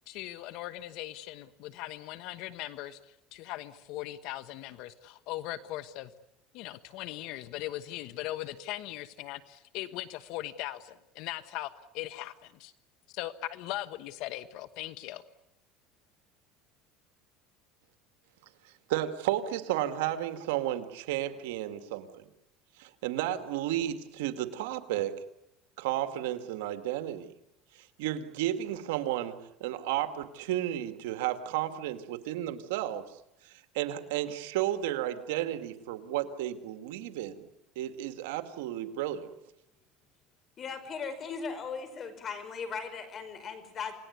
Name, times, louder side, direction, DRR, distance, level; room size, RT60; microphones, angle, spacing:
voice 1, 0.1-3.0 3.3-6.1 6.5-12.7 13.1-15.2, left 15 dB, 65° left, 13 dB, 1.2 m, -39 dB
voice 2, 18.9-22.2 22.8-25.2 25.8-27.3 27.8-33.0 33.4-37.4 37.8-39.3, right 13 dB, 90° right, 9 dB, 2.2 m, -33 dB
voice 3, 40.6-43.9, left 5 dB, 35° left, 11 dB, 5.4 m, -38 dB
28.5 x 19.0 x 9.6 m, 0.86 s
supercardioid pair, 130°, 0 cm